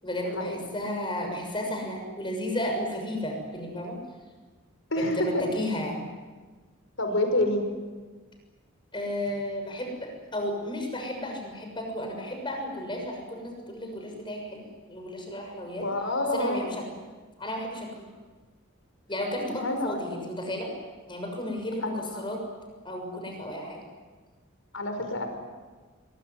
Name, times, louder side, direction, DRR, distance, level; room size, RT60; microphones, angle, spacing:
voice 1, 0.0-4.0 5.0-6.0 8.9-15.9 16.3-16.9 17.4-18.1 19.1-20.7 21.1-22.4 22.8-23.8, left 1 dB, 25° left, 3 dB, 6.5 m, -33 dB
voice 2, 4.9-5.4 7.0-7.6 15.8-16.7 19.4-20.0 21.8-22.3 24.7-25.3, left 1 dB, 75° left, 6 dB, 5.5 m, -28 dB
22.5 x 22.5 x 9.7 m, 1.4 s
head